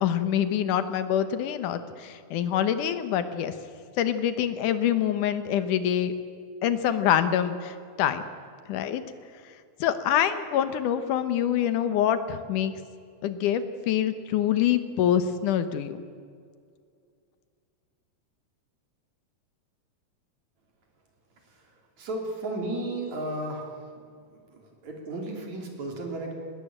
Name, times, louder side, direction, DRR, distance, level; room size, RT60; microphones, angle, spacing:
voice 1, 0.0-3.5 4.0-6.1 6.6-8.2 8.7-9.0 9.8-12.7 13.2-16.0, left 10 dB, 85° left, 11 dB, 2.7 m, -25 dB
voice 2, 22.0-23.6 24.8-26.3, right 2 dB, 65° right, 1 dB, 4.7 m, -33 dB
19.5 x 19.0 x 8.9 m, 2.2 s
omnidirectional pair, 3.5 m